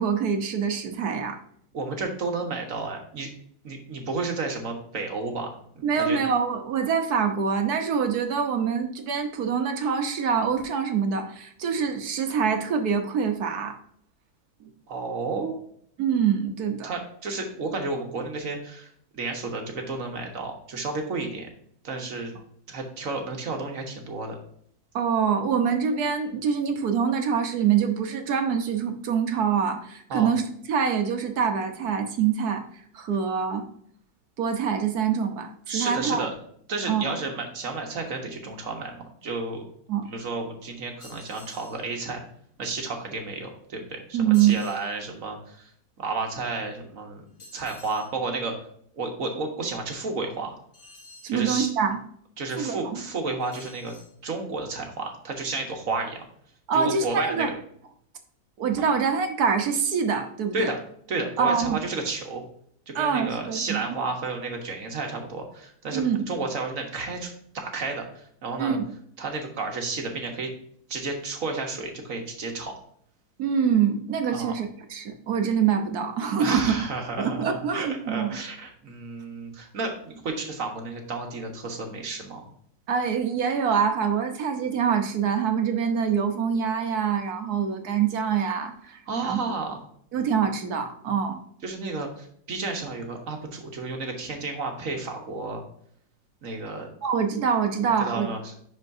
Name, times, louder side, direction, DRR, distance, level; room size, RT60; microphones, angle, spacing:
voice 1, 0.0-1.4 5.8-13.8 16.0-16.9 24.9-30.4 30.7-32.6 32.9-33.6 34.4-36.3 36.9-37.1 39.9-40.1 44.1-44.6 51.2-52.0 52.6-53.0 56.7-57.5 58.6-60.7 61.4-61.8 62.9-63.9 65.9-66.2 68.6-68.9 73.4-76.7 77.2-78.4 82.9-89.4 90.1-91.4 97.0-98.3, right 7 dB, 75° right, 5 dB, 1.5 m, -25 dB
voice 2, 1.7-3.3 3.6-5.5 5.7-6.2 14.9-15.5 16.8-21.5 21.8-22.3 22.7-24.4 30.1-30.3 35.7-36.3 36.7-39.6 40.1-42.2 42.6-45.7 46.0-47.2 47.5-48.5 48.9-50.5 51.3-51.7 52.4-53.9 54.2-56.2 56.7-57.5 58.7-58.9 60.5-60.8 61.1-62.4 62.9-68.8 69.2-70.5 70.9-72.7 74.3-74.5 76.4-82.5 89.1-89.8 91.6-95.6 96.4-96.9 98.0-98.5, right 3 dB, 60° right, 3 dB, 1.6 m, -32 dB
sound 1, 41.0-41.8 44.3-44.9 47.4-48.1 50.7-51.4 53.4-54.1, left 2 dB, 40° left, 2.1 m, -49 dB
10.5 x 4.5 x 2.7 m, 0.65 s
omnidirectional pair, 1.7 m